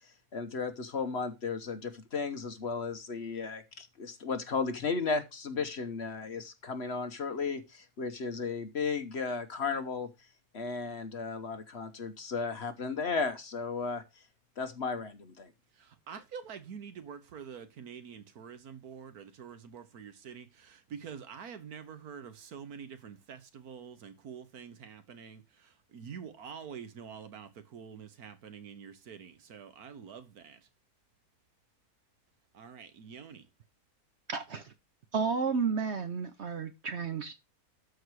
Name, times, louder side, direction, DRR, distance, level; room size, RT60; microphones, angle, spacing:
voice 1, 0.3-10.1 10.5-14.0 14.6-15.5, left 4 dB, 50° left, 1.1 m, -34 dB
voice 2, 15.7-30.6 32.5-33.5, right 7 dB, 75° right, 1.6 m, -46 dB
voice 3, 34.3-34.7 35.1-37.3, right 5 dB, 55° right, 0.9 m, -32 dB
13.0 x 4.7 x 4.7 m
omnidirectional pair, 1.6 m